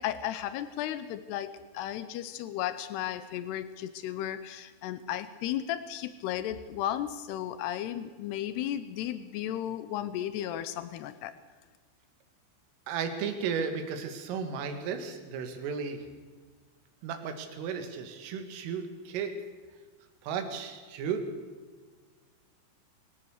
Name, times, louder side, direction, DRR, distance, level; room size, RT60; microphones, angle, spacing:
voice 1, 0.0-11.3, left 11 dB, 90° left, 12 dB, 2.3 m, -34 dB
voice 2, 12.9-16.0 17.0-19.3 20.2-21.2, right 6 dB, 80° right, 6 dB, 4.6 m, -34 dB
23.5 x 17.5 x 6.6 m, 1.5 s
omnidirectional pair, 5.8 m